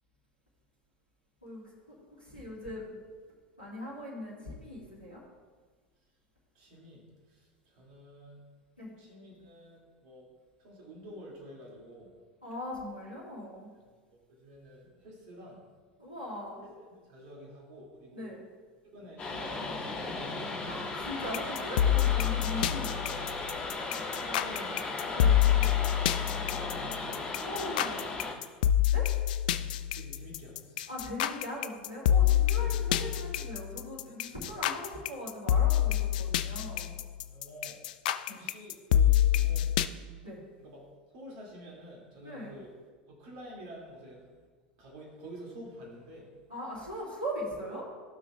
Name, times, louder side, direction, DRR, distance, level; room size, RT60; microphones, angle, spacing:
voice 1, 1.4-3.0 3.6-5.2 8.8-8.9 12.4-13.7 16.0-16.6 18.1-18.4 20.6-23.3 25.1-25.4 27.4-28.0 28.9-29.1 30.9-36.9 38.3-38.4 40.2-40.4 42.2-42.6 46.5-47.8, left 1 dB, 90° left, -8 dB, 2.2 m, -40 dB
voice 2, 6.5-8.5 9.0-10.3 10.6-12.1 14.1-15.6 16.8-18.4 18.8-20.6 24.0-25.3 25.6-25.8 26.3-27.6 29.9-30.9 32.5-32.9 37.2-37.7 38.4-39.9 40.6-40.8 41.1-42.7 43.1-44.5 44.8-46.4, equal, 55° right, -3 dB, 2.3 m, -49 dB
sound 1, 19.2-28.3, left 3 dB, 25° left, 2.1 m, -36 dB
sound 2, 21.3-39.9, left 11 dB, 55° left, 0.3 m, -27 dB
15.0 x 6.1 x 2.3 m, 1.5 s
figure-of-eight pair, 80°, 5 cm